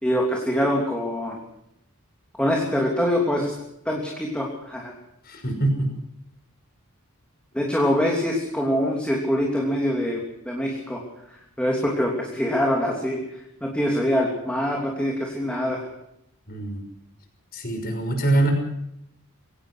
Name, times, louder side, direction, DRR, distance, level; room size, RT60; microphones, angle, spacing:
voice 1, 0.0-1.4 2.4-3.5 3.8-4.9 7.5-11.0 11.6-13.2 13.6-15.8, equal, 5° left, -1 dB, 3.1 m, -24 dB
voice 2, 5.3-5.9 16.5-16.8 17.5-18.5, right 2 dB, 45° left, 4 dB, 5.9 m, -23 dB
23.5 x 18.0 x 6.4 m, 0.79 s
head